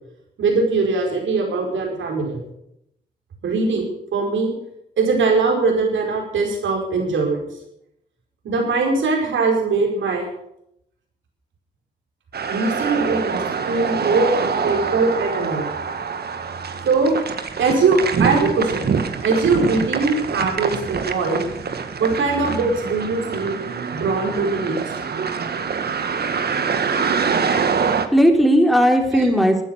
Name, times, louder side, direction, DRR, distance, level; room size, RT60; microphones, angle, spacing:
voice 1, 0.4-2.4 3.4-4.5 5.0-7.5 8.4-10.3 12.5-15.6 16.8-17.1 17.6-18.9 19.2-21.4 22.0-23.6 23.9-24.8 29.1-29.3, right 3 dB, 75° right, 1 dB, 5.0 m, -21 dB
sound 1, 12.3-28.1, right 6 dB, 55° right, 1.7 m, -25 dB
voice 2, 27.0-27.7 28.1-29.6, equal, ahead, 3 dB, 3.7 m, -17 dB
15.0 x 10.0 x 6.8 m, 0.75 s
supercardioid pair, 50°, 20 cm